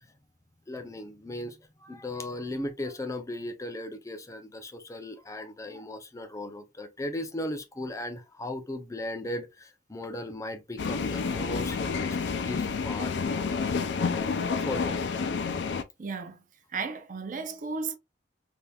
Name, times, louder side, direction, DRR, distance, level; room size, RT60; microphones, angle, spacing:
voice 1, 0.7-13.4 13.7-13.8 14.6-15.0, left 1 dB, 20° left, 0.5 m, -37 dB
sound 1, 10.8-15.8, left 5 dB, 75° left, 0.4 m, -29 dB
voice 2, 16.0-16.4 16.7-18.0, right 4 dB, 45° right, 0.5 m, -34 dB
3.4 x 2.8 x 2.3 m
head